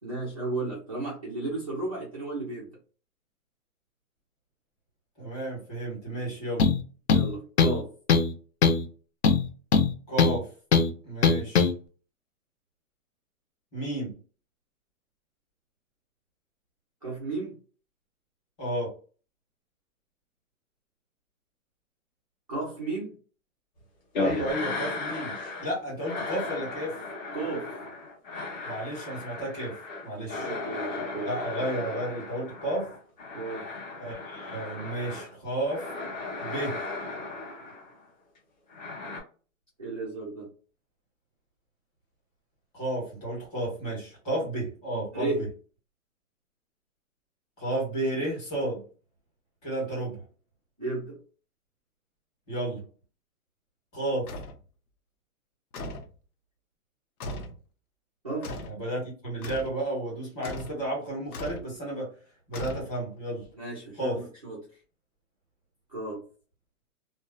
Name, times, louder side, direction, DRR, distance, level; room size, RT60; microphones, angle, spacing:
voice 1, 0.0-2.7 7.1-7.9 17.0-17.6 22.5-23.1 27.3-27.7 30.4-31.3 33.3-33.7 39.8-40.5 45.1-45.4 50.8-51.2 58.2-58.6 63.5-64.7 65.9-66.2, right 3 dB, 25° right, -6 dB, 0.4 m, -34 dB
voice 2, 5.2-6.7 10.1-10.5 11.0-11.7 13.7-14.1 18.6-18.9 24.2-25.3 25.6-27.0 28.6-29.8 30.0-30.5 31.2-32.9 34.0-35.9 36.4-36.8 42.7-45.3 47.6-48.8 49.6-50.2 52.5-52.8 53.9-54.3 58.6-62.1 62.5-63.5 64.0-64.2, right 1 dB, 15° left, -7 dB, 1.2 m, -32 dB
sound 1, 6.6-6.8 7.1-7.8 8.1-8.3 8.6-8.9 9.2-10.4 10.7-10.9 11.2-11.7, left 5 dB, 50° left, 0.4 m, -21 dB
sound 2, 24.1-25.7 26.0-35.3 35.7-38.0 38.7-39.2, left 3 dB, 30° left, 1.0 m, -36 dB
sound 3, 54.3-54.6 55.7-56.1 57.2-57.6 58.4-58.8 59.4-59.8 60.4-60.8 61.3-61.7 62.5-63.2, left 1 dB, 90° left, 0.8 m, -38 dB
2.6 x 2.1 x 2.2 m, 0.38 s
hypercardioid pair, 170°, 43 cm